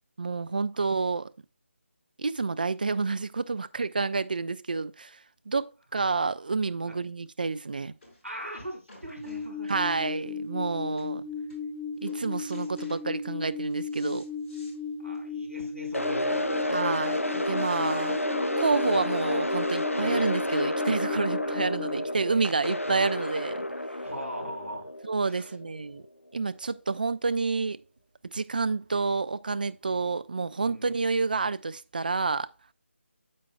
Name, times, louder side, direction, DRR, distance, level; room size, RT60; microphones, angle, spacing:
voice 1, 0.2-1.3 2.2-5.2 5.5-7.9 9.6-11.2 12.0-14.2 16.7-18.2 18.6-23.7 25.0-26.0 26.3-27.8 28.3-32.5, right 4 dB, 40° right, 0.4 m, -29 dB
Old Wood Sideboard, 7.3-7.4 8.0-8.2 8.5-10.1 10.7-10.8 11.0-11.1 11.5-11.8 12.1-13.1 13.5-14.8 15.1-15.2 15.6-15.7 16.5-20.0 20.8-20.9, left 2 dB, 30° left, 5.0 m, -54 dB
voice 2, 8.2-9.9 15.0-16.8 22.0-22.8 24.0-24.9 25.2-25.5 29.9-30.0 30.6-30.9, equal, 80° right, 5.0 m, -41 dB
sound 1, 9.1-22.0, left 5 dB, 5° right, 2.2 m, -36 dB
sound 2, 15.9-26.0, left 1 dB, 90° left, 0.5 m, -30 dB
9.3 x 7.5 x 2.3 m
figure-of-eight pair, 160°, 7 cm